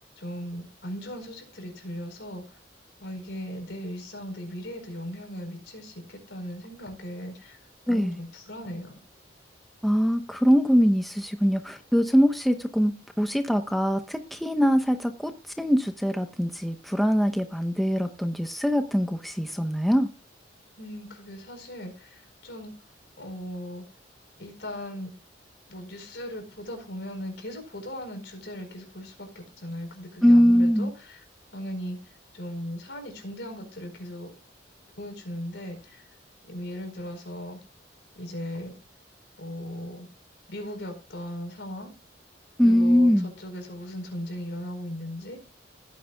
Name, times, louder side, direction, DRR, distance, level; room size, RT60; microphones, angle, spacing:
voice 1, 0.2-2.6 3.0-7.6 7.9-8.9 20.8-22.7 23.2-23.8 24.4-25.1 25.7-31.2 31.5-32.0 32.3-34.3 35.0-36.0 36.4-37.6 38.1-38.7 39.4-40.1 40.5-41.9 42.6-45.4, equal, 70° left, 5 dB, 4.8 m, -38 dB
voice 2, 9.8-20.1 30.2-30.9 42.6-43.3, equal, ahead, 6 dB, 0.9 m, -22 dB
16.5 x 9.3 x 2.3 m, 0.31 s
head